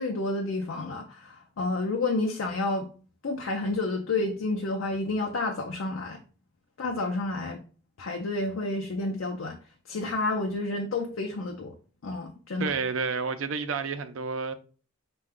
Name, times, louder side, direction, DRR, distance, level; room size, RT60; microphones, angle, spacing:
voice 1, 0.0-2.9 3.2-6.2 6.8-7.6 8.0-9.6 9.9-11.7 12.0-12.7, left 2 dB, 85° left, 0.5 m, -30 dB
voice 2, 12.6-14.5, right 5 dB, 85° right, 0.5 m, -30 dB
5.4 x 2.3 x 3.6 m
head